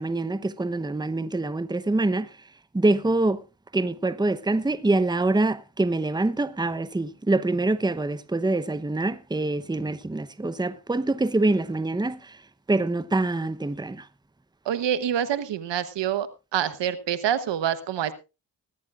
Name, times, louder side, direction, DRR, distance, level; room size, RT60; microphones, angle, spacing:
voice 1, 0.0-2.3 2.7-3.4 3.7-12.4 12.7-14.0, right 2 dB, 10° right, 0.9 m, -25 dB
voice 2, 14.6-16.3 16.5-18.1, right 9 dB, 75° right, 1.2 m, -26 dB
19.5 x 13.0 x 2.5 m
supercardioid pair, 50°, 43 cm